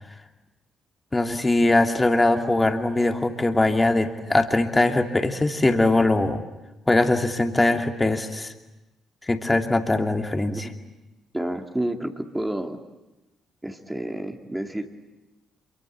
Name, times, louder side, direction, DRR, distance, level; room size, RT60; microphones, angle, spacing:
voice 1, 1.1-6.4 6.9-8.5 9.3-10.7, left 2 dB, 20° left, 5 dB, 2.6 m, -21 dB
voice 2, 11.3-12.8 13.6-14.9, right 1 dB, 10° right, 4 dB, 2.5 m, -30 dB
27.5 x 24.0 x 8.3 m, 1.0 s
figure-of-eight pair, 45°, 0 cm